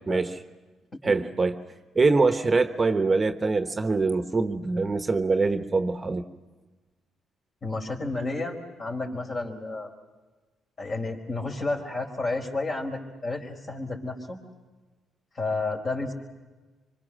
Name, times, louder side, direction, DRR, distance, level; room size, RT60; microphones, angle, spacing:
voice 1, 0.1-0.4 1.0-1.6 1.9-6.2, right 3 dB, 25° right, 8 dB, 1.1 m, -24 dB
voice 2, 7.6-9.9 10.8-14.4 15.3-16.1, left 2 dB, 40° left, 3 dB, 4.4 m, -31 dB
25.0 x 25.0 x 6.4 m, 1.2 s
cardioid pair, 90°, 0 cm